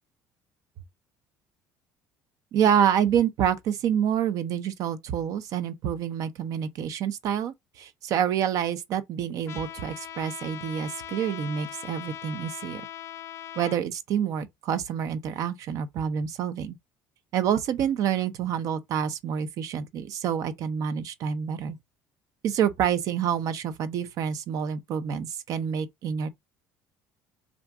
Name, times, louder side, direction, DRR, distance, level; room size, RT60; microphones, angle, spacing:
voice 1, 2.5-12.8 13.6-16.8 17.3-21.8 22.4-26.3, right 8 dB, 60° right, 0.7 m, -27 dB
Trumpet, 9.5-13.8, left 10 dB, 45° left, 0.5 m, -40 dB
3.5 x 2.5 x 4.6 m
cardioid pair, 125°, 7 cm